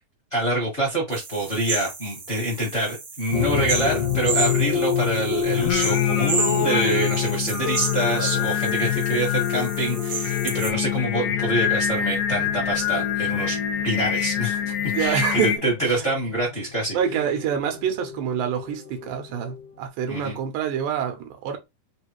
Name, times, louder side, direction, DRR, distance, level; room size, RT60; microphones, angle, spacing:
voice 1, 0.3-13.6 13.8-14.6 15.0-17.0 20.1-20.4, right 1 dB, 35° left, 1.0 m, -26 dB
sound 1, 1.1-10.7, right 3 dB, 65° right, 1.0 m, -32 dB
sound 2, 3.3-19.7, left 9 dB, 60° left, 2.2 m, -28 dB
Singing, 5.6-15.6, left 9 dB, 80° left, 2.1 m, -27 dB
voice 2, 8.2-8.5 14.9-15.6 16.9-21.6, right 8 dB, 85° right, 2.4 m, -27 dB
5.2 x 2.4 x 3.0 m
omnidirectional pair, 3.8 m